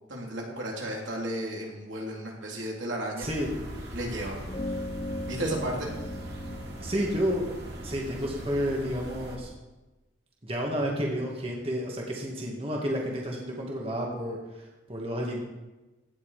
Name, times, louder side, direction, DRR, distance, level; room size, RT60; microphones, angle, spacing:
voice 1, 0.1-3.3 3.9-4.4 5.3-5.9, right 1 dB, 75° right, -2 dB, 3.5 m, -33 dB
voice 2, 3.2-3.5 6.8-7.5 7.8-9.5 10.4-15.4, equal, 30° right, -1 dB, 2.1 m, -31 dB
sound 1, 3.2-9.4, right 1 dB, 55° right, 2.9 m, -40 dB
sound 2, 4.5-9.3, left 1 dB, 30° left, 1.0 m, -39 dB
17.5 x 9.9 x 5.0 m, 1.1 s
head